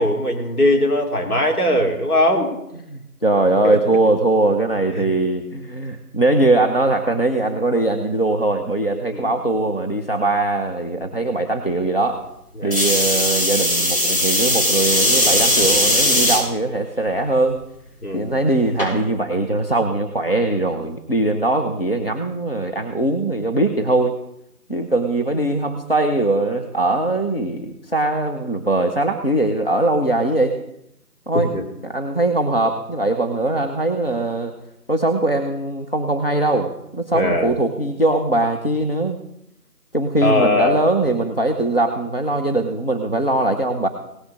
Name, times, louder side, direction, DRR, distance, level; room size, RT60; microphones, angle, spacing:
voice 1, 0.0-2.5 3.6-3.8 5.0-5.1 9.1-9.3 12.6-12.9 18.0-18.3 31.3-31.6 37.1-37.6 40.2-40.8, left 1 dB, 70° left, 2 dB, 3.4 m, -20 dB
voice 2, 2.9-12.2 12.6-17.6 18.1-24.2 24.7-30.5 31.3-31.5 31.8-34.5 34.9-39.2 39.9-43.9, right 2 dB, 40° left, 2 dB, 0.8 m, -21 dB
sound 1, 12.7-16.4 17.1-17.5 18.8-18.9, left 1 dB, 85° left, 6.6 m, -18 dB
18.0 x 6.5 x 6.3 m, 0.82 s
figure-of-eight pair, 180°, 47 cm